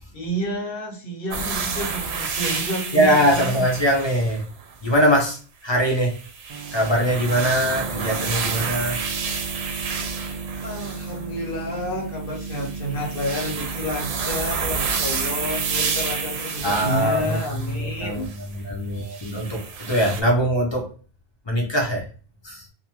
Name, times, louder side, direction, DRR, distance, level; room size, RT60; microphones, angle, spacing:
voice 1, 0.1-3.6 10.6-18.3, equal, 60° left, 0 dB, 0.9 m, -30 dB
sound 1, 1.3-5.0 5.8-11.3 12.3-18.5 19.1-20.2, right 5 dB, 85° right, 0.8 m, -30 dB
voice 2, 2.9-4.5 4.8-6.2 6.7-9.0 16.6-17.4 17.7-20.9 21.5-22.1 22.4-22.7, equal, 35° left, 0 dB, 0.5 m, -22 dB
sound 2, 6.5-18.0, right 4 dB, 45° right, 0.4 m, -35 dB
2.4 x 2.3 x 2.9 m, 0.39 s
omnidirectional pair, 1.1 m